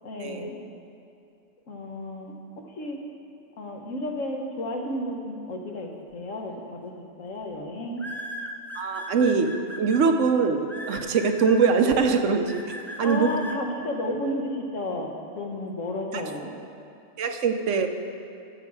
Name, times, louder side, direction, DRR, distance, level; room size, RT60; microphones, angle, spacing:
voice 1, 0.0-0.6 1.7-3.0 3.6-6.9 7.2-8.0 13.0-16.5, left 1 dB, 85° left, 2 dB, 1.5 m, -32 dB
sound 1, 6.5-6.8 8.0-10.0 10.7-11.7 12.5-13.6, equal, ahead, 0.5 m, -37 dB
voice 2, 8.8-9.5 9.8-12.6 13.0-13.3 17.2-17.9, right 5 dB, 75° right, 6 dB, 1.1 m, -22 dB
13.5 x 7.8 x 4.8 m, 2.6 s
omnidirectional pair, 1.3 m